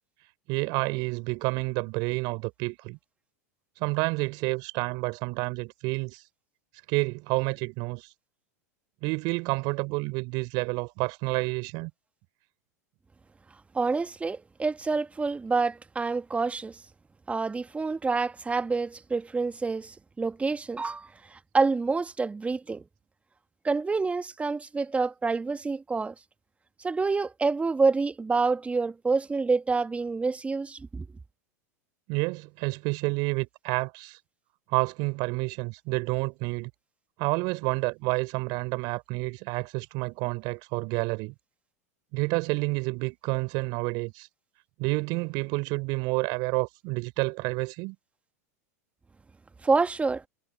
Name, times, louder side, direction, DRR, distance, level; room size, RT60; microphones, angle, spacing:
voice 1, 0.5-3.0 3.8-6.2 6.9-8.1 9.0-11.9 32.1-34.2 34.7-36.7 37.2-41.3 42.1-44.3 44.8-48.0, right 27 dB, 55° right, 4.5 m, -29 dB
voice 2, 13.7-16.8 17.3-22.8 23.6-26.1 26.8-31.1 49.6-50.2, right 4 dB, 15° right, 1.8 m, -27 dB
hypercardioid pair, 90°, 9 cm